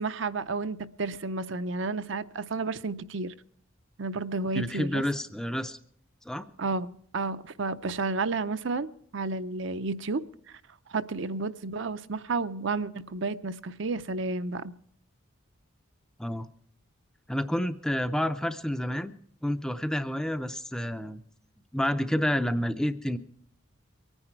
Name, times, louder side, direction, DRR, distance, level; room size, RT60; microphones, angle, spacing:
voice 1, 0.0-3.3 4.0-5.0 6.6-10.2 10.9-14.7, right 3 dB, 60° right, 12 dB, 0.6 m, -31 dB
voice 2, 4.5-5.8 6.3-6.5 16.2-16.5 17.3-19.1 19.4-21.2 21.7-23.2, equal, 5° left, 10 dB, 0.5 m, -29 dB
23.5 x 9.9 x 4.5 m, 0.66 s
head